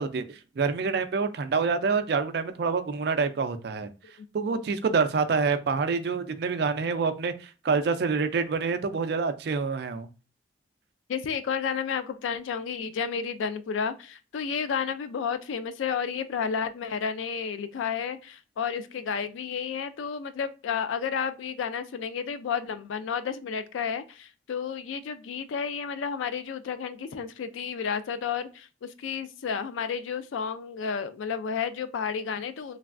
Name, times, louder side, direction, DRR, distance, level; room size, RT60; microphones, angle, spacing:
voice 1, 0.0-3.9 4.3-10.1, right 5 dB, 55° right, 0.3 m, -27 dB
voice 2, 11.1-32.8, left 6 dB, 85° left, 0.3 m, -31 dB
3.3 x 2.2 x 2.4 m
head